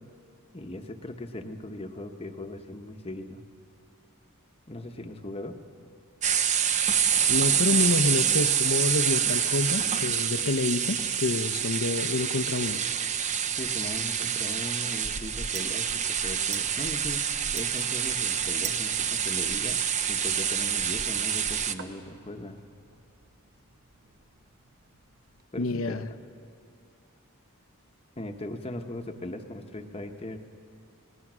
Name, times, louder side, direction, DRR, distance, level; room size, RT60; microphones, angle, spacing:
voice 1, 0.5-3.4 4.7-5.6 13.5-19.8 20.1-22.6 25.5-26.0 28.2-30.4, left 1 dB, 25° left, 6 dB, 1.0 m, -39 dB
sound 1, 6.2-21.7, right 8 dB, 35° right, 0.6 m, -27 dB
voice 2, 7.3-12.8 25.6-26.1, left 3 dB, 65° left, 12 dB, 0.8 m, -28 dB
sound 2, 12.6-25.4, right 7 dB, 50° right, 1.0 m, -49 dB
28.5 x 18.5 x 6.2 m, 2.4 s
head